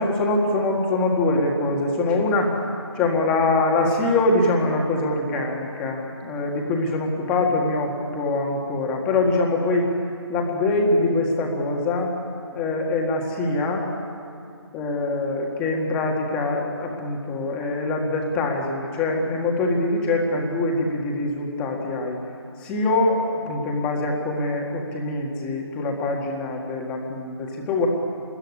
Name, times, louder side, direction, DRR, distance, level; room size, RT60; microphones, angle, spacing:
voice 1, 0.0-2.5 3.0-9.9 10.3-12.1 12.5-13.9 14.7-22.2 22.6-27.9, left 2 dB, 5° left, 0 dB, 1.8 m, -23 dB
27.5 x 21.0 x 9.7 m, 2.4 s
figure-of-eight pair, 170°, 15 cm